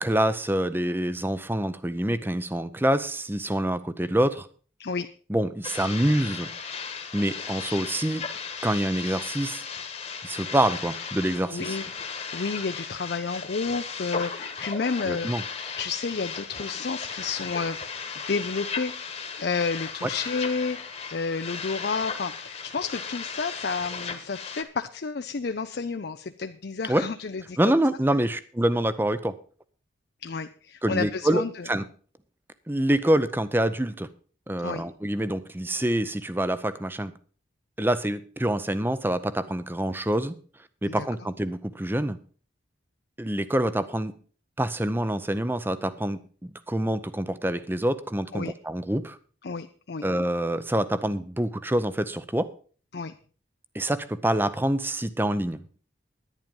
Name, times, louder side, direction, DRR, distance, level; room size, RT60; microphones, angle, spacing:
voice 1, 0.0-4.5 5.3-6.5 7.1-8.2 8.6-9.6 10.2-11.8 15.0-15.4 20.0-20.1 26.9-27.1 27.6-29.4 30.8-31.8 32.7-34.1 34.5-37.1 37.8-40.3 40.8-42.2 43.2-44.1 44.6-49.2 50.0-52.5 53.7-55.6, right 1 dB, 10° right, 14 dB, 0.6 m, -26 dB
sound 1, 5.6-24.6, left 5 dB, 35° left, 1.4 m, -36 dB
voice 2, 11.5-15.3 15.8-27.8 30.2-31.7 34.6-34.8 40.9-41.1 48.3-48.5 49.4-50.1 52.9-53.1, left 4 dB, 55° left, 9 dB, 0.5 m, -31 dB
10.5 x 10.5 x 5.4 m, 0.40 s
head